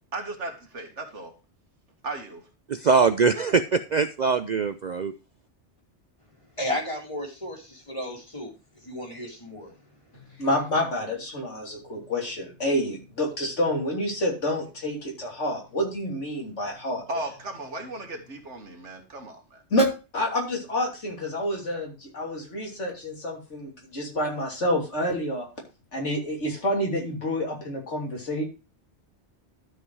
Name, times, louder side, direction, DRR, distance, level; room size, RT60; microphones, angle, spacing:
voice 1, 0.1-1.4 2.0-2.5 17.1-19.6, right 2 dB, 85° right, 2.2 m, -36 dB
voice 2, 2.7-5.1, right 5 dB, 50° right, 0.5 m, -22 dB
voice 3, 6.6-8.5 8.8-9.7, left 1 dB, 25° left, 2.8 m, -33 dB
voice 4, 10.4-17.0 19.7-19.9 20.1-25.5 25.9-28.4, left 1 dB, 85° left, 3.4 m, -28 dB
12.5 x 5.5 x 4.7 m
omnidirectional pair, 1.2 m